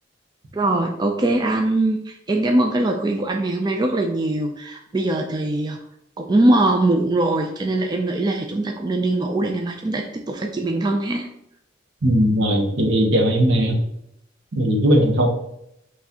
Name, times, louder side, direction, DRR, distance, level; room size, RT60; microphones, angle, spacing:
voice 1, 0.5-5.8 6.2-11.3, right 2 dB, 20° right, 2 dB, 0.4 m, -21 dB
voice 2, 12.0-13.8 14.5-15.3, equal, 75° right, 2 dB, 0.9 m, -18 dB
5.7 x 3.2 x 2.8 m, 0.78 s
head